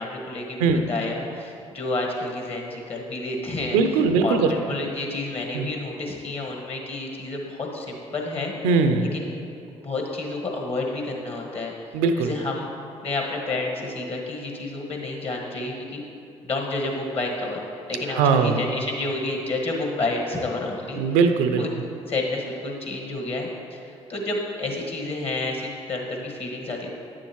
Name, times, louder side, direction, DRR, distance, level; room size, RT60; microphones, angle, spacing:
voice 1, 0.0-8.5 9.1-9.3 9.8-11.7 12.2-12.7 13.0-16.0 16.4-17.6 17.9-21.0 21.6-21.7 22.1-26.9, left 2 dB, 40° left, 0 dB, 1.5 m, -30 dB
voice 2, 3.7-4.5 5.5-5.7 8.6-9.1 11.9-12.3 18.1-18.6 21.0-21.6, right 5 dB, 75° right, 7 dB, 0.5 m, -20 dB
9.1 x 7.1 x 3.0 m, 2.5 s
hypercardioid pair, 45°, 15 cm